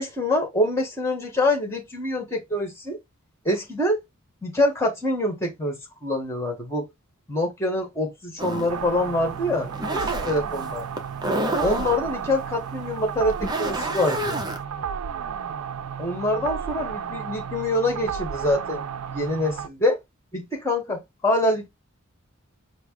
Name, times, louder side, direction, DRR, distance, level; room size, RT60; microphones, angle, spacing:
voice 1, 0.0-3.0 3.4-4.0 4.4-6.9 7.3-10.0 10.2-10.9 11.6-14.4 16.0-18.8 19.1-20.0 20.3-21.7, left 1 dB, 10° left, 1.8 m, -25 dB
sound 1, 8.4-14.6, right 1 dB, 20° right, 0.7 m, -30 dB
sound 2, 8.7-19.7, right 7 dB, 85° right, 0.4 m, -33 dB
5.0 x 2.1 x 4.7 m
head